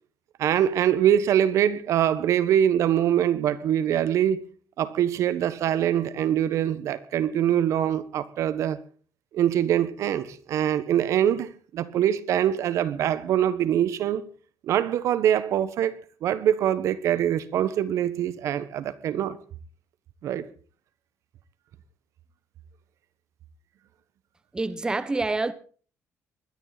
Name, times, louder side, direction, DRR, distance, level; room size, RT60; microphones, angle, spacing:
voice 1, 0.4-4.4 4.8-8.8 9.3-14.2 14.6-19.4 20.2-20.5, right 10 dB, 65° right, 1.3 m, -24 dB
voice 2, 24.5-25.5, right 3 dB, 15° right, 1.1 m, -27 dB
21.0 x 13.5 x 4.1 m
cardioid pair, 130°, 6 cm